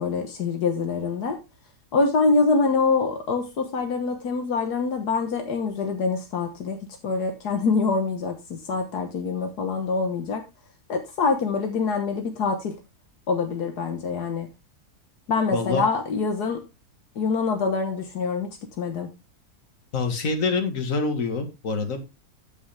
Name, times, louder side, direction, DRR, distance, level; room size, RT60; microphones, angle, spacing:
voice 1, 0.0-1.4 1.9-10.4 10.9-12.7 13.3-14.5 15.3-16.6 17.1-19.1, left 4 dB, 80° left, 5 dB, 1.7 m, -25 dB
voice 2, 15.5-15.8 19.9-22.0, left 4 dB, 55° left, 5 dB, 2.0 m, -26 dB
9.4 x 7.8 x 3.4 m, 0.26 s
omnidirectional pair, 1.7 m